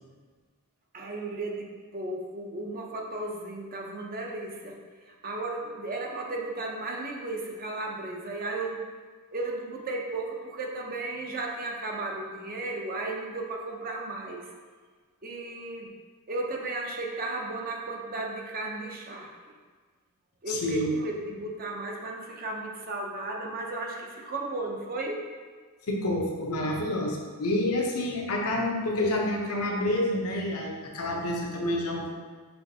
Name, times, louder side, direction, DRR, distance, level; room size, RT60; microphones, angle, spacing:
voice 1, 0.9-4.8 5.1-8.8 9.3-14.5 15.2-15.9 16.3-19.3 20.4-25.3, right 2 dB, 40° right, 0 dB, 0.6 m, -34 dB
voice 2, 20.5-20.9 25.9-32.2, left 1 dB, 80° left, -1 dB, 0.8 m, -28 dB
5.6 x 3.2 x 2.7 m, 1.5 s
head